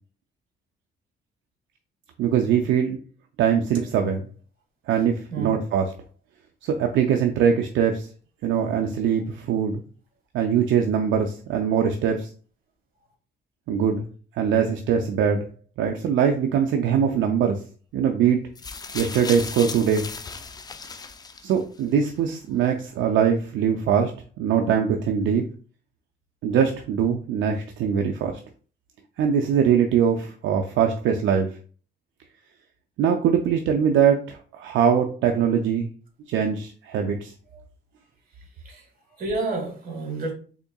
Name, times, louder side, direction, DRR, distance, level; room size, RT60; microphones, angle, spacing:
voice 1, 2.2-3.0 3.4-4.3 4.9-5.9 6.6-8.1 8.4-9.8 10.3-12.3 13.7-14.1 14.4-15.5 15.8-17.6 17.9-18.4 18.9-20.1 21.4-24.1 24.4-25.4 26.4-28.4 29.2-31.5 33.0-35.9 36.3-37.3, right 7 dB, 75° right, 3 dB, 0.5 m, -22 dB
sound 1, 18.6-21.8 22.7-22.8, left 4 dB, 20° left, 0.3 m, -36 dB
voice 2, 39.2-40.3, right 3 dB, 45° right, 2 dB, 1.6 m, -30 dB
3.6 x 3.6 x 2.3 m, 0.38 s
cardioid pair, 90°, 20 cm